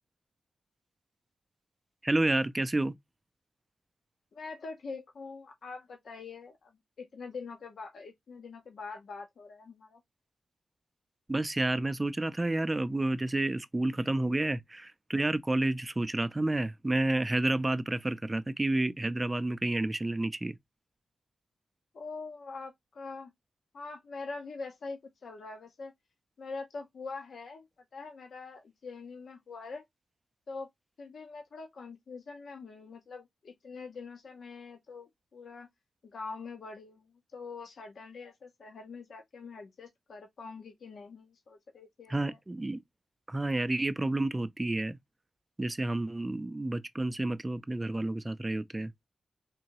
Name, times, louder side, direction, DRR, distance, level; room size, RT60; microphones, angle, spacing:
voice 1, 2.0-2.9 11.3-20.6 42.1-42.8 43.3-45.0 45.6-48.9, right 2 dB, 20° right, 0.4 m, -30 dB
voice 2, 4.3-10.0 21.9-23.3 23.7-25.9 26.4-27.7 27.9-29.8 30.5-30.7 31.0-35.7 36.0-42.4, left 4 dB, 70° left, 0.8 m, -44 dB
3.7 x 2.7 x 2.9 m
wide cardioid pair, 105°, 0 cm